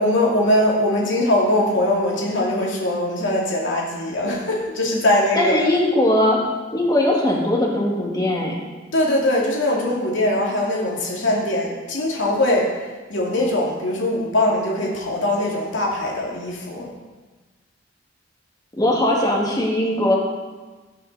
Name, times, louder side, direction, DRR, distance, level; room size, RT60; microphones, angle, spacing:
voice 1, 0.0-5.7 8.9-12.7 13.1-16.9, left 1 dB, 80° left, -3 dB, 2.3 m, -21 dB
voice 2, 5.4-6.4 6.7-8.6 18.8-20.2, left 1 dB, 20° left, -2 dB, 2.0 m, -19 dB
17.0 x 5.9 x 4.1 m, 1.3 s
head